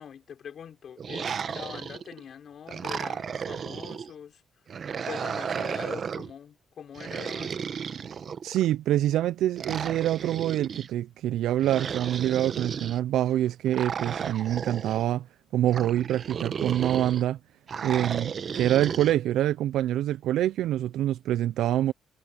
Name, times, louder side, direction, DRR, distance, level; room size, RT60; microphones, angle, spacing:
voice 1, 0.0-4.4 5.1-7.7, left 8 dB, 60° left, 3.5 m, -43 dB
sound 1, 1.0-2.2 2.7-4.1 4.7-6.3 6.9-8.7 9.6-10.9 11.6-13.0 13.7-15.0 15.7-17.2 17.7-19.1, right 7 dB, 50° right, 1.0 m, -34 dB
voice 2, 8.4-15.3 15.5-17.4 17.8-21.9, right 12 dB, 85° right, 0.4 m, -26 dB
cardioid pair, 90°, 0 cm